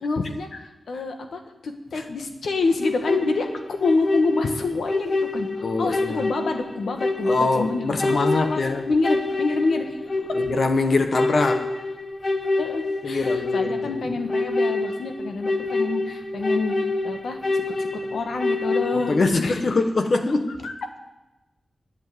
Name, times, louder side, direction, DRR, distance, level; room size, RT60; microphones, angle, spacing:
voice 1, 0.0-0.5 0.9-9.9 12.6-16.8 17.0-19.6 20.6-20.7, left 3 dB, 85° left, 5 dB, 1.4 m, -27 dB
sound 1, 2.8-19.3, left 2 dB, 30° left, 1.0 m, -27 dB
voice 2, 5.6-6.2 7.2-8.8 10.3-11.7 13.0-14.0 18.9-20.7, left 3 dB, 50° left, 7 dB, 1.2 m, -23 dB
11.0 x 7.5 x 9.4 m, 1.0 s
wide cardioid pair, 135°, 0 cm